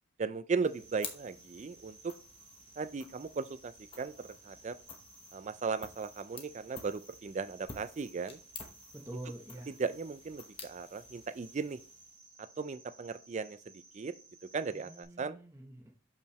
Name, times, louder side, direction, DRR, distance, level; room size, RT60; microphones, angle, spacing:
voice 1, 0.2-2.1 2.8-3.7 4.0-4.1 4.5-4.8 5.3-8.4 9.8-11.8 12.6-13.6 13.9-14.1 14.5-15.4, right 4 dB, 35° right, 0.3 m, -36 dB
sound 1, 0.6-12.3, left 5 dB, 25° left, 0.9 m, -51 dB
Cricket, 0.7-15.0, right 3 dB, 85° right, 2.5 m, -58 dB
voice 2, 8.9-9.7 14.7-15.9, right 1 dB, 15° right, 0.9 m, -46 dB
6.7 x 5.6 x 3.1 m
head